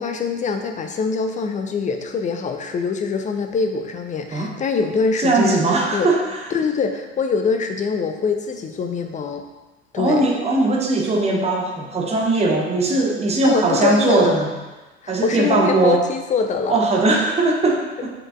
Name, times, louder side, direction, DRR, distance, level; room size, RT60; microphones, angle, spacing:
voice 1, 0.0-5.6 5.9-6.1 6.5-9.4 9.9-10.2 13.4-14.4 15.0-16.8, left 5 dB, 20° left, 6 dB, 0.6 m, -23 dB
voice 2, 5.2-6.4 10.0-14.5 15.1-16.0 16.7-18.1, right 2 dB, 20° right, 0 dB, 1.0 m, -19 dB
7.5 x 4.9 x 2.6 m, 1.2 s
figure-of-eight pair, 65°, 34 cm